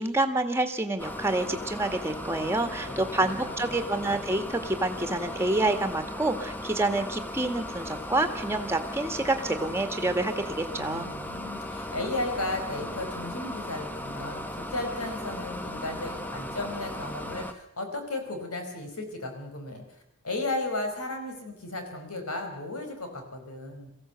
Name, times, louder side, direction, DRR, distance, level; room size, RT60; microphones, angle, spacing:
voice 1, 0.0-11.1, right 2 dB, 10° right, 7 dB, 1.8 m, -28 dB
sound 1, 1.0-17.5, left 1 dB, 10° left, 1.2 m, -37 dB
voice 2, 2.4-3.7 10.8-19.8 20.2-23.9, left 2 dB, 80° left, 5 dB, 4.8 m, -35 dB
23.0 x 15.5 x 8.1 m, 0.80 s
head